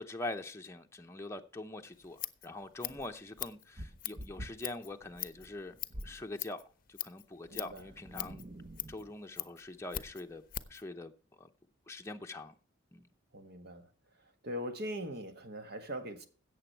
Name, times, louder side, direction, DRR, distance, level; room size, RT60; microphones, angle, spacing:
voice 1, 0.0-5.7 6.0-6.6 6.9-8.4 8.9-10.4 10.7-11.1 11.4-11.5 11.9-12.5 12.9-13.1, left 2 dB, 15° left, 0.7 m, -43 dB
Scissors, 1.9-10.9, left 12 dB, 45° left, 0.7 m, -43 dB
sound 1, 2.9-6.3 7.5-9.2, right 1 dB, 35° right, 0.9 m, -48 dB
voice 2, 7.5-7.8 13.3-13.9 14.4-16.3, equal, 55° right, 1.6 m, -41 dB
16.0 x 7.0 x 4.5 m
head